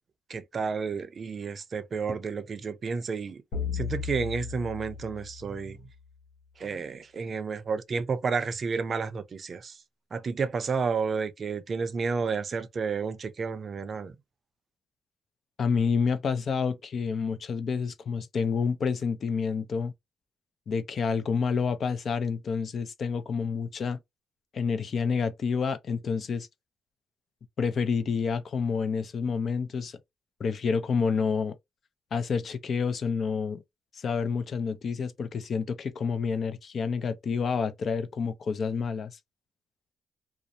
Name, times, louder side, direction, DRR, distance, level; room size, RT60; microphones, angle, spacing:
voice 1, 0.3-3.4 3.7-5.8 6.6-9.8 10.1-14.1, right 5 dB, 45° right, 0.4 m, -31 dB
sound 1, 3.5-6.0, left 6 dB, 80° left, 0.7 m, -35 dB
voice 2, 15.6-19.9 20.7-24.0 24.5-26.5 27.6-30.0 30.4-31.6 32.1-33.6 33.9-39.2, left 5 dB, 50° left, 0.5 m, -28 dB
2.5 x 2.0 x 2.6 m
cardioid pair, 90°, 0 cm